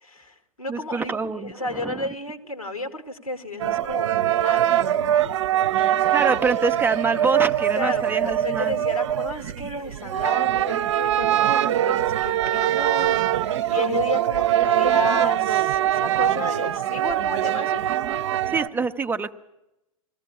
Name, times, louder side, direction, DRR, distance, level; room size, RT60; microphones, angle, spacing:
voice 1, 0.0-1.1 1.4-4.9 7.7-17.8, left 2 dB, 85° left, 7 dB, 2.2 m, -32 dB
voice 2, 0.7-2.1 5.8-8.8 18.5-19.3, right 4 dB, 10° right, 9 dB, 0.6 m, -26 dB
sound 1, 3.6-18.7, right 11 dB, 55° right, 0.7 m, -23 dB
21.5 x 15.0 x 8.5 m, 0.92 s
figure-of-eight pair, 100°, 18 cm